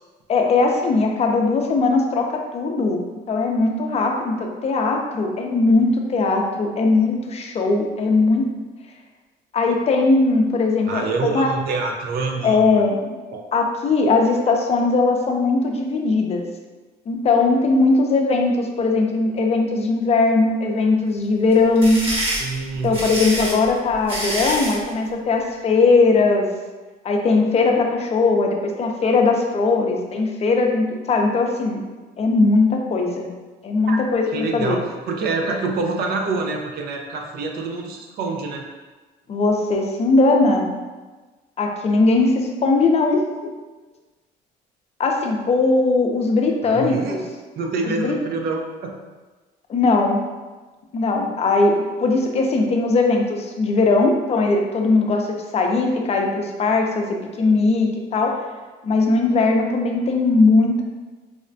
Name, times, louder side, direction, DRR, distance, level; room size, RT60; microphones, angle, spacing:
voice 1, 0.3-3.0 3.3-8.5 9.5-11.5 12.4-13.1 13.5-16.4 17.1-22.0 22.8-26.5 27.0-31.8 32.2-33.3 33.6-34.8 39.3-40.7 41.6-43.2 45.0-47.2 48.0-48.2 49.7-50.2 50.9-58.4 58.8-60.8, left 3 dB, 40° left, 2 dB, 0.5 m, -19 dB
voice 2, 10.9-12.8 13.3-13.4 22.4-23.0 33.9-34.0 34.3-38.6 46.6-47.2 47.6-48.9, right 4 dB, 70° right, 1 dB, 0.6 m, -26 dB
sound 1, 21.5-24.8, equal, 35° right, 1.2 m, -26 dB
4.8 x 2.1 x 2.6 m, 1.3 s
cardioid pair, 110°, 17 cm